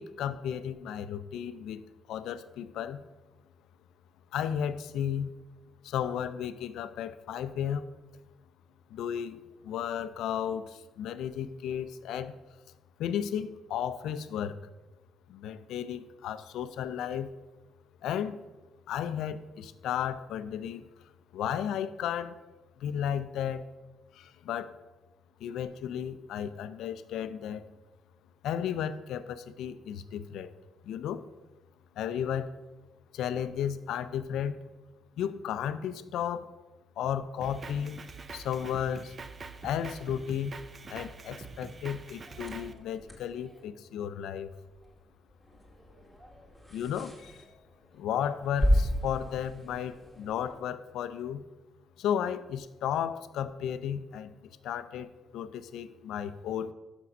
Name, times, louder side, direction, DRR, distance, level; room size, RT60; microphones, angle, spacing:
voice 1, 0.0-1.8 2.1-3.0 4.3-5.3 5.8-7.9 8.9-12.4 13.0-14.6 15.3-17.3 18.0-18.4 18.9-20.9 21.3-22.4 22.8-23.6 24.1-24.8 25.4-27.6 28.4-30.5 30.8-31.3 32.0-32.5 33.1-34.6 35.2-36.5 37.0-38.0 38.3-39.2 39.6-40.6 40.9-44.5 46.7-47.5 47.9-51.4 52.0-54.3 54.6-56.7, left 9 dB, 80° left, 13 dB, 0.4 m, -34 dB
Drum kit, 37.4-42.7, right 4 dB, 35° right, 0.5 m, -45 dB
sound 1, 42.3-50.6, equal, 15° right, 1.8 m, -34 dB
6.0 x 5.9 x 5.3 m, 1.1 s
cardioid pair, 90°, 0 cm